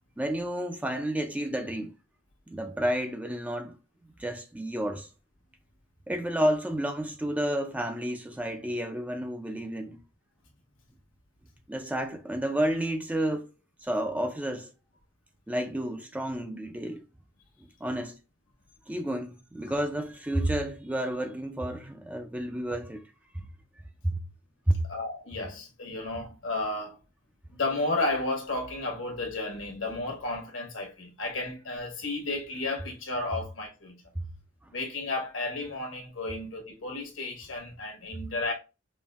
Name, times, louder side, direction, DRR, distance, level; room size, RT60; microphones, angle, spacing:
voice 1, 0.2-1.9 2.5-3.8 4.2-5.1 6.1-10.0 11.7-13.5 13.8-14.7 15.5-17.0 17.8-18.2 18.9-23.0 24.0-24.2 24.7-24.9 34.2-34.3, right 1 dB, 5° right, 0.3 m, -30 dB
voice 2, 24.9-27.0 27.5-34.0 34.7-38.5, left 2 dB, 70° left, 1.1 m, -33 dB
5.1 x 2.6 x 2.3 m
head